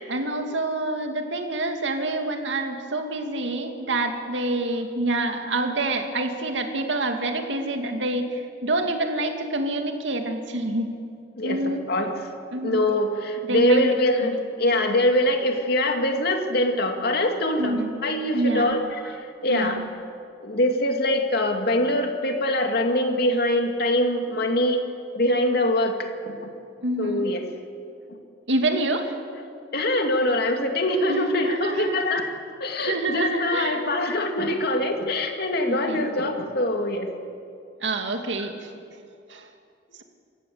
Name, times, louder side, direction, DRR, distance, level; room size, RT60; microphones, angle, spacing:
voice 1, 0.1-10.9 11.4-11.8 12.5-12.8 13.5-13.9 14.2-14.4 17.6-17.9 18.3-18.8 19.5-19.9 26.8-27.3 28.5-29.1 31.1-32.0 32.8-33.8 35.7-36.1 37.8-38.8 39.3-39.5, right 2 dB, 85° right, 4 dB, 2.3 m, -27 dB
voice 2, 11.4-12.2 12.6-19.8 20.4-24.8 25.1-26.5 27.0-27.4 28.1-28.2 29.7-32.3 32.6-37.1, left 1 dB, 60° left, 4 dB, 2.5 m, -23 dB
27.5 x 15.5 x 7.9 m, 2.4 s
head